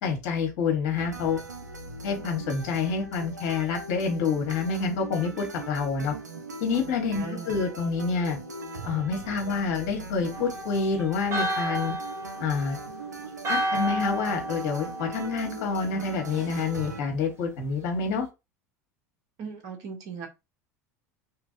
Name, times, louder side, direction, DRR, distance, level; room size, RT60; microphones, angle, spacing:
voice 1, 0.0-1.4 2.0-6.1 6.6-8.4 8.8-11.9 12.4-12.8 13.5-18.3, left 5 dB, 55° left, 2 dB, 1.2 m, -28 dB
sound 1, 1.0-17.0, right 2 dB, 90° right, 0.4 m, -40 dB
voice 2, 7.1-7.6 19.4-20.3, right 6 dB, 50° right, 3 dB, 1.0 m, -38 dB
Church bell, 10.3-16.0, right 1 dB, 30° right, 1.1 m, -32 dB
2.8 x 2.5 x 2.6 m, 0.25 s
figure-of-eight pair, 75°, 9 cm